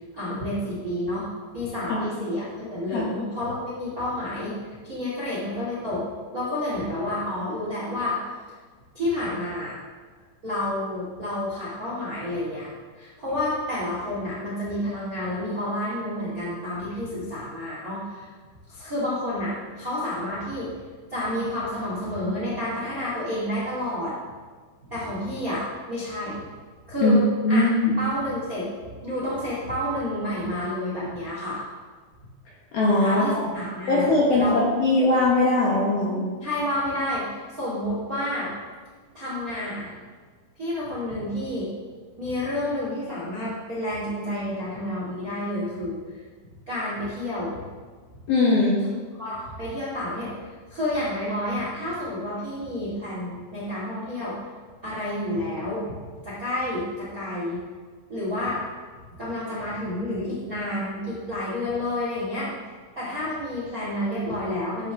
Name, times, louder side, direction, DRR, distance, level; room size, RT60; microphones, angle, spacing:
voice 1, 0.1-1.3 1.5-6.0 6.3-8.2 8.9-9.7 10.4-12.7 12.9-18.3 18.7-20.7 21.1-24.1 24.9-26.4 26.9-27.2 27.5-27.7 28.0-28.7 29.0-31.6 33.0-34.6 36.4-38.5 39.1-39.9 40.6-41.7 42.2-46.2 46.7-47.6 49.1-54.3 54.8-55.8 56.2-57.6 58.1-58.6 59.2-62.5 62.9-64.9, left 1 dB, 30° right, -7 dB, 1.5 m, -30 dB
voice 2, 27.4-28.0 32.7-33.4 33.9-36.3 48.3-48.8, left 2 dB, 65° left, -6 dB, 2.6 m, -20 dB
12.5 x 8.2 x 3.6 m, 1.5 s
omnidirectional pair, 5.9 m